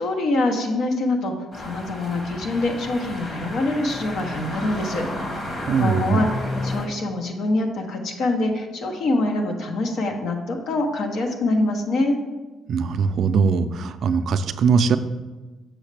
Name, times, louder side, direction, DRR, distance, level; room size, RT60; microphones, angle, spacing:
voice 1, 0.0-5.0 5.5-12.2, left 2 dB, 70° left, 3 dB, 0.9 m, -25 dB
sound 1, 1.5-6.9, left 1 dB, 35° left, 1.4 m, -32 dB
voice 2, 5.7-6.2 12.7-15.0, right 5 dB, 60° right, 10 dB, 0.4 m, -21 dB
6.4 x 6.3 x 3.3 m, 1.2 s
cardioid pair, 110°, 0 cm